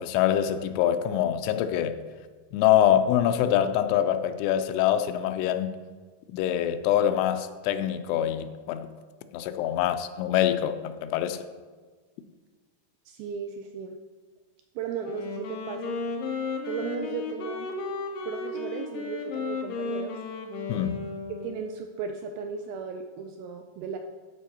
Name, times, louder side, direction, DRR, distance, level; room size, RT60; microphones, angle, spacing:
voice 1, 0.0-2.0 2.5-5.8 6.3-8.9 9.3-11.4 20.7-21.0, left 10 dB, 85° left, 2.7 m, -24 dB
voice 2, 13.1-14.0 14.8-16.0 16.7-17.8 18.2-20.2 21.3-24.0, right 6 dB, 85° right, 2.2 m, -36 dB
Wind instrument woodwind instrument, 15.0-21.8, left 4 dB, 70° left, 2.3 m, -34 dB
13.0 x 5.1 x 4.3 m
omnidirectional pair, 4.7 m